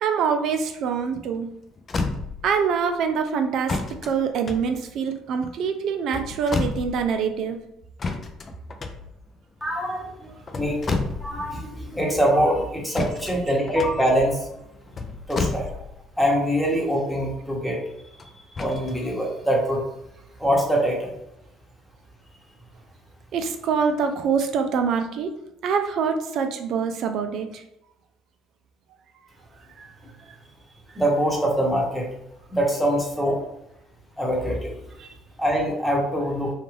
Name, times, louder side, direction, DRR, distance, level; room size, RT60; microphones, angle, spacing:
voice 1, 0.0-1.5 2.4-7.6 23.3-25.3 25.6-27.6 29.8-29.9 35.0-35.1, right 6 dB, 65° right, 6 dB, 0.3 m, -25 dB
sound 1, 1.4-1.5 1.8-2.6 3.7-5.3 6.0-7.2 8.0-9.4 10.3-11.6 11.8-11.9 12.9-16.2 18.2-19.0 19.6-19.7, left 3 dB, 40° left, 0.4 m, -30 dB
voice 2, 9.6-14.5 15.3-15.7 16.2-19.8 20.4-21.1 30.9-32.1 32.5-33.4 34.2-34.8 35.4-36.5, equal, 5° left, -1 dB, 1.0 m, -24 dB
2.4 x 2.3 x 3.2 m, 0.83 s
hypercardioid pair, 70°, 0 cm